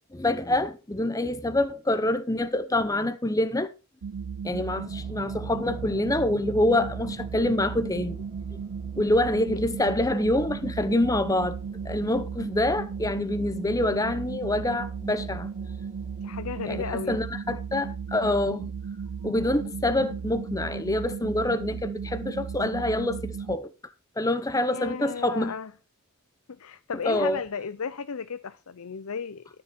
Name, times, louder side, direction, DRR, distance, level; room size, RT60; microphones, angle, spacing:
voice 1, 0.1-3.7 4.4-8.2 9.0-11.6 11.8-15.5 16.7-18.7 19.2-23.7 24.2-25.5 27.0-27.4, left 1 dB, 15° left, 0.8 m, -26 dB
sound 1, 4.0-23.6, right 6 dB, 90° right, 0.5 m, -35 dB
sound 2, 4.8-16.8, right 1 dB, 10° right, 1.5 m, -50 dB
voice 2, 16.2-17.3 24.7-25.7 26.5-29.6, left 6 dB, 75° left, 0.6 m, -34 dB
13.5 x 7.0 x 5.2 m
head